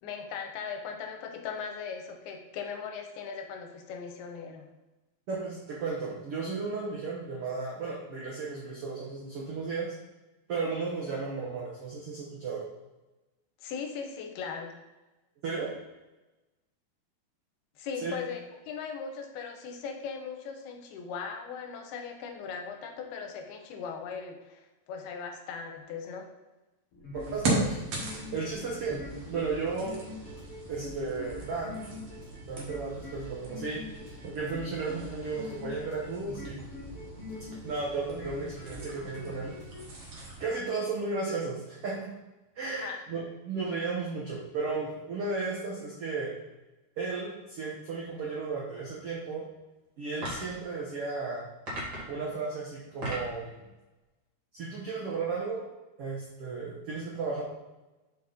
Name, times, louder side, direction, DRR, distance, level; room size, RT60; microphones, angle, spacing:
voice 1, 0.0-4.7 13.6-14.8 17.8-26.3 42.8-43.0, left 6 dB, 90° left, 4 dB, 2.8 m, -39 dB
voice 2, 5.3-9.9 10.5-12.6 15.4-15.7 18.0-18.2 27.1-27.8 28.3-29.9 30.7-31.8 32.4-33.8 34.2-36.6 37.6-39.5 40.4-42.1 42.5-46.3 47.0-49.4 50.0-51.5 52.1-53.6 54.5-55.6 56.0-57.4, right 4 dB, 80° right, -4 dB, 1.3 m, -34 dB
sound 1, 26.9-39.8, left 2 dB, 50° left, 1.8 m, -44 dB
sound 2, 27.2-40.5, right 2 dB, 55° right, 2.0 m, -39 dB
sound 3, 50.2-50.6 51.7-52.2 52.8-53.4, equal, 35° right, 2.2 m, -36 dB
6.5 x 5.0 x 4.1 m, 1.1 s
omnidirectional pair, 4.5 m